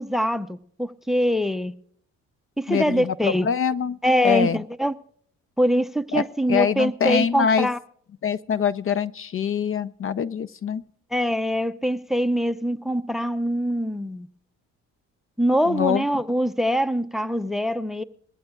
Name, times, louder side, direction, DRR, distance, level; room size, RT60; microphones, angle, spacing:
voice 1, 0.0-1.7 2.6-3.5 4.0-4.9 5.6-7.8 11.1-14.3 15.4-18.0, equal, ahead, 14 dB, 0.7 m, -23 dB
voice 2, 2.7-4.0 4.2-4.6 6.1-6.2 6.5-7.7 8.2-10.8 15.7-16.0, left 7 dB, 45° left, 17 dB, 0.5 m, -24 dB
21.0 x 15.5 x 2.3 m, 0.63 s
cardioid pair, 90°, 30 cm